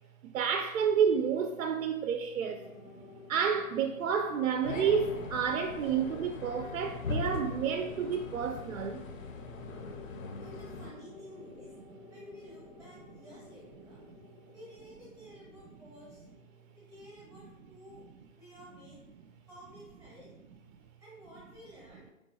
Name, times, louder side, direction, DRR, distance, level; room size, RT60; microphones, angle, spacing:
voice 1, 0.2-2.7 3.3-9.1 14.1-14.2, right 7 dB, 75° right, 0.5 m, -30 dB
sound 1, 2.4-17.0, left 3 dB, 20° left, 0.4 m, -53 dB
sound 2, 4.6-10.9, left 4 dB, 65° left, 0.7 m, -40 dB
voice 2, 10.4-11.7 12.1-14.0 14.5-16.2 16.7-18.0 18.3-19.0 19.4-20.3 21.0-22.1, equal, 10° right, 0.7 m, -52 dB
4.7 x 3.6 x 2.7 m
hypercardioid pair, 160°, 42 cm